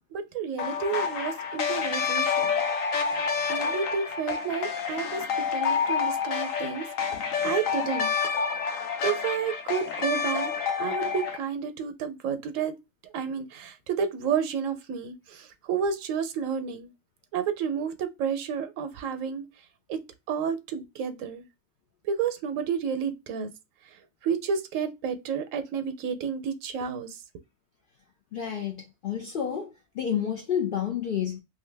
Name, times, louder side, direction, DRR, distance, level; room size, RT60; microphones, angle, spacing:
voice 1, 0.1-2.6 3.5-5.2 5.5-8.1 9.0-10.5 10.8-12.7 13.1-16.9 17.3-19.4 19.9-20.0 20.3-21.4 22.1-23.5 24.2-27.2, right 7 dB, 75° right, 1.0 m, -31 dB
sound 1, 0.6-11.4, left 6 dB, 85° left, 1.1 m, -28 dB
voice 2, 28.3-31.4, left 8 dB, 65° left, 0.5 m, -30 dB
2.7 x 2.5 x 3.2 m
omnidirectional pair, 1.4 m